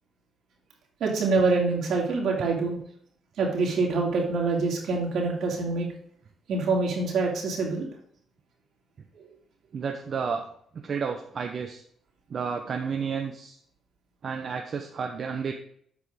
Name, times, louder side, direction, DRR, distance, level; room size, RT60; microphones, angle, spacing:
voice 1, 1.0-2.7 3.4-5.9 6.5-7.9 9.1-9.2, right 3 dB, 75° right, -1 dB, 2.9 m, -25 dB
voice 2, 9.7-10.5 10.7-11.8 12.3-13.6 14.2-15.5, right 6 dB, 55° right, 4 dB, 0.8 m, -31 dB
8.0 x 5.3 x 5.0 m, 0.64 s
cardioid pair, 90°, 0 cm